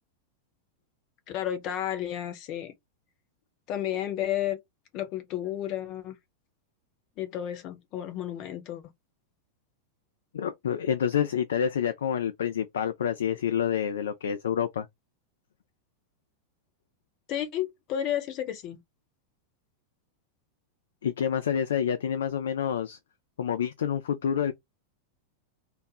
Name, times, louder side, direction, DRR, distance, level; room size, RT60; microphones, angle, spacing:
voice 1, 1.3-2.7 3.7-4.6 4.9-6.2 7.2-8.8 17.3-18.8, left 11 dB, 40° left, 0.8 m, -32 dB
voice 2, 10.3-14.9 21.0-23.0 23.4-24.5, left 8 dB, 65° left, 0.3 m, -28 dB
2.5 x 2.0 x 3.2 m
figure-of-eight pair, 90°, 0 cm